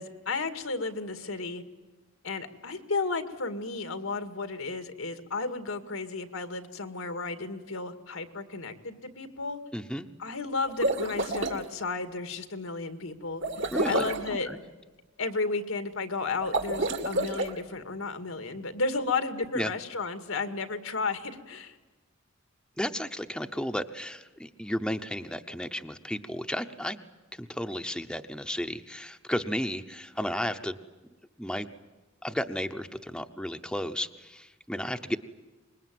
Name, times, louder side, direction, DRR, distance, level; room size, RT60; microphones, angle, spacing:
voice 1, 0.0-1.6 2.2-9.6 10.2-13.4 13.8-14.5 15.2-21.8, left 3 dB, 85° left, 9 dB, 2.0 m, -33 dB
voice 2, 9.7-10.1 13.7-14.0 14.5-14.6 19.5-19.7 22.8-27.0 27.3-30.7 31.4-31.7 32.2-35.2, equal, 5° left, 7 dB, 0.8 m, -33 dB
sound 1, 10.6-11.6 13.4-14.3 16.4-17.5, right 2 dB, 60° right, 2.2 m, -29 dB
25.5 x 21.5 x 9.3 m, 1.2 s
head